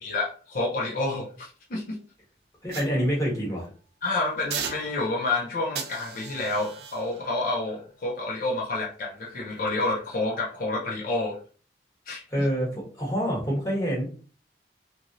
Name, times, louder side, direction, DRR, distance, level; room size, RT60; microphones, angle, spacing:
voice 1, 0.0-2.0 4.0-11.4 12.1-12.5, left 2 dB, 50° left, -2 dB, 0.5 m, -29 dB
voice 2, 2.6-3.7 12.3-14.1, equal, 20° left, -4 dB, 1.1 m, -26 dB
sound 1, 2.7-3.7 4.5-5.3 5.8-9.0 9.5-9.7, right 7 dB, 70° right, 0.5 m, -39 dB
3.0 x 2.5 x 2.5 m, 0.39 s
head